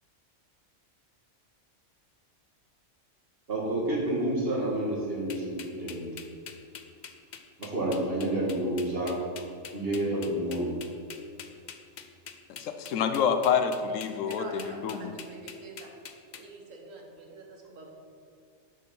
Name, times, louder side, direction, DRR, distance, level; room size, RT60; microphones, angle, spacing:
voice 1, 3.5-6.0 7.6-9.1 9.7-10.7, right 1 dB, 50° right, -4 dB, 2.1 m, -29 dB
sound 1, 5.3-16.4, left 7 dB, 55° left, 0.5 m, -44 dB
voice 2, 12.5-15.1, left 7 dB, 85° left, 8 dB, 1.0 m, -27 dB
voice 3, 14.2-15.9 16.3-17.9, right 2 dB, 90° right, 1 dB, 1.5 m, -45 dB
6.8 x 6.4 x 5.3 m, 2.3 s
omnidirectional pair, 1.3 m